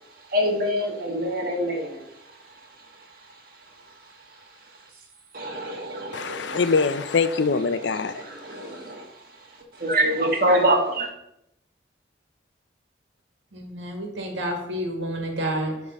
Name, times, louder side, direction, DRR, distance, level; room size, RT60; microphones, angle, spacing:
voice 1, 0.3-2.1 5.3-6.6 7.8-9.1 9.7-11.1, right 1 dB, 50° right, -1 dB, 1.7 m, -25 dB
voice 2, 6.1-8.2, left 4 dB, 70° left, 12 dB, 0.5 m, -23 dB
voice 3, 13.5-15.8, right 1 dB, 80° right, 2 dB, 1.8 m, -29 dB
11.0 x 3.7 x 5.3 m, 0.82 s
head